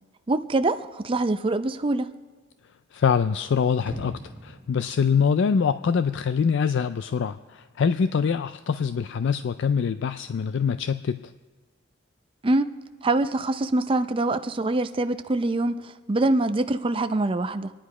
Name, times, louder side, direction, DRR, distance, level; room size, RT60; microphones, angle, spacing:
voice 1, 0.3-2.1 12.4-12.6 13.0-17.7, right 2 dB, 25° right, 0.5 m, -24 dB
voice 2, 2.9-11.2, left 6 dB, 60° left, 0.4 m, -24 dB
sound 1, 3.9-6.0 6.4-6.5, right 1 dB, 10° right, 0.8 m, -41 dB
25.0 x 10.5 x 4.8 m
head